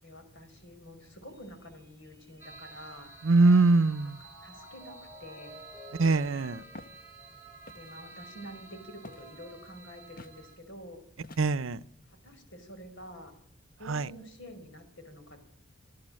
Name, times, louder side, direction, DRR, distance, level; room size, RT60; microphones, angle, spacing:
voice 1, 0.0-3.1 4.4-5.6 7.7-11.0 12.1-13.3 13.8-15.4, equal, 65° left, 5.4 m, -48 dB
Mallet percussion, 1.3-7.8, left 1 dB, 15° left, 3.1 m, -54 dB
sound 1, 2.4-10.6, right 4 dB, 10° right, 4.3 m, -52 dB
voice 2, 3.2-4.2 6.0-6.6 11.4-11.8 13.9-14.1, right 3 dB, 80° right, 0.8 m, -23 dB
Walk footsteps, 6.7-7.0 7.6-8.0 9.0-9.4 10.2-10.4 11.2-11.7, left 2 dB, 45° left, 1.1 m, -48 dB
26.5 x 14.0 x 7.7 m
head